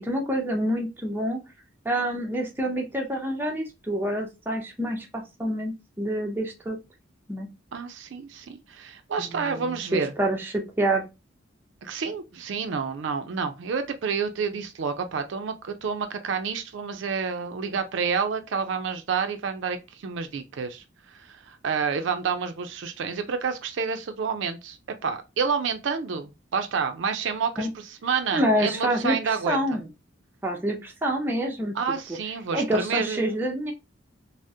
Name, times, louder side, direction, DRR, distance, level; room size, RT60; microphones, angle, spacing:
voice 1, 0.0-1.4 1.8-6.8 7.3-7.5 9.2-11.0 27.6-27.7 28.3-29.9 30.4-31.7 32.5-33.7, right 1 dB, 10° right, 0.5 m, -27 dB
voice 2, 7.7-10.1 11.8-24.8 25.0-29.6 31.7-33.3, right 5 dB, 70° right, 0.4 m, -29 dB
3.5 x 2.0 x 2.6 m
head